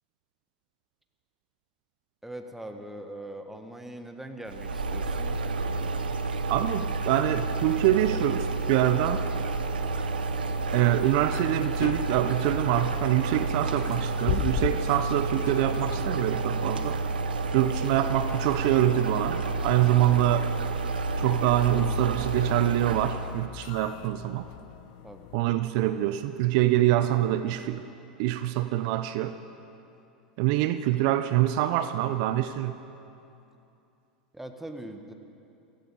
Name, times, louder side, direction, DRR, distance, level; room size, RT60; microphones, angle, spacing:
voice 1, 2.2-5.4 25.0-25.3 34.3-35.1, right 1 dB, 5° right, 5 dB, 1.4 m, -41 dB
sound 1, 4.5-23.4, right 3 dB, 85° right, 0.8 m, -30 dB
voice 2, 6.5-9.2 10.7-17.0 17.5-20.5 21.2-24.5 25.3-27.9 28.2-29.4 30.4-32.8, right 13 dB, 60° right, 11 dB, 0.6 m, -25 dB
sound 2, 9.9-25.4, left 16 dB, 55° left, 0.4 m, -40 dB
15.5 x 15.5 x 5.5 m, 2.7 s
hypercardioid pair, 90°, 5 cm